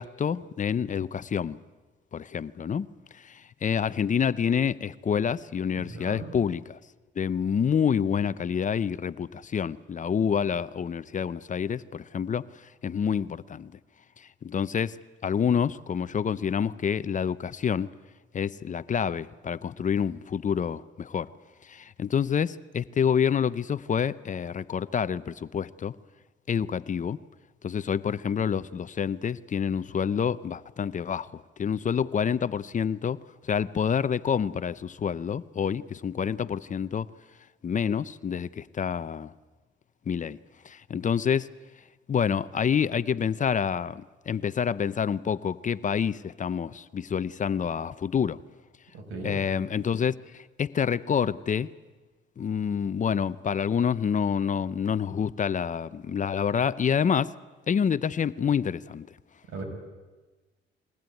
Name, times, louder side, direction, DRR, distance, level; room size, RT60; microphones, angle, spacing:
voice 1, 0.0-1.6 2.1-2.9 3.2-6.8 7.2-12.4 12.8-13.7 14.4-17.9 18.3-21.3 21.7-25.9 26.5-27.2 27.6-33.2 33.5-37.1 37.6-39.3 40.1-40.4 40.6-41.5 42.1-48.4 49.2-51.7 52.4-57.3 57.7-59.1, left 7 dB, 40° left, 16 dB, 0.7 m, -27 dB
voice 2, 5.8-6.3 48.9-49.3 59.5-59.6, right 3 dB, 80° right, 2 dB, 6.6 m, -38 dB
22.0 x 19.0 x 9.2 m, 1.2 s
cardioid pair, 90°, 20 cm